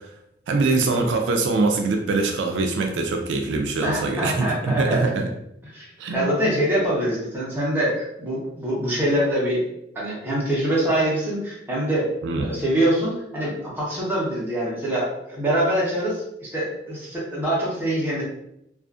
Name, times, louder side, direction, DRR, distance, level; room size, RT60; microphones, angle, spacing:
voice 1, 0.5-5.3 6.0-6.3 12.2-12.5, right 3 dB, 80° right, 3 dB, 0.3 m, -23 dB
voice 2, 3.8-5.0 5.7-5.9 6.1-9.6 9.9-12.1 12.3-18.2, right 1 dB, 10° right, -7 dB, 0.8 m, -24 dB
2.4 x 2.4 x 2.4 m, 0.78 s
head